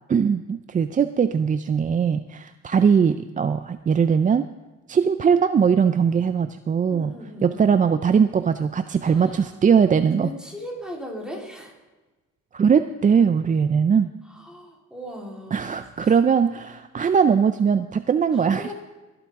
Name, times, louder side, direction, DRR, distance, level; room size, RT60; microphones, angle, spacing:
voice 1, 0.1-4.5 4.9-7.1 7.4-10.3 12.5-14.1 15.5-18.7, right 6 dB, 25° right, 10 dB, 0.4 m, -20 dB
voice 2, 6.9-7.7 9.0-9.5 10.1-11.7 14.3-15.7 16.0-16.1 18.3-18.7, equal, 5° right, -3 dB, 3.7 m, -37 dB
21.0 x 8.6 x 3.6 m, 1.2 s
cardioid pair, 90°, 30 cm